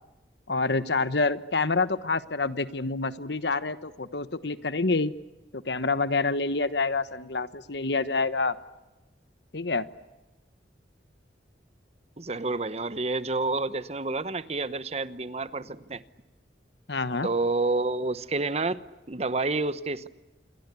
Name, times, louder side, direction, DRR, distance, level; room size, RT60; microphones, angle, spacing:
voice 1, 0.5-5.1 5.5-8.5 9.5-9.8 16.9-17.3, left 3 dB, 70° left, 14 dB, 1.3 m, -27 dB
voice 2, 12.2-16.0 17.2-18.8 19.1-20.1, right 3 dB, 35° right, 14 dB, 1.0 m, -29 dB
28.0 x 23.0 x 8.4 m, 1.1 s
head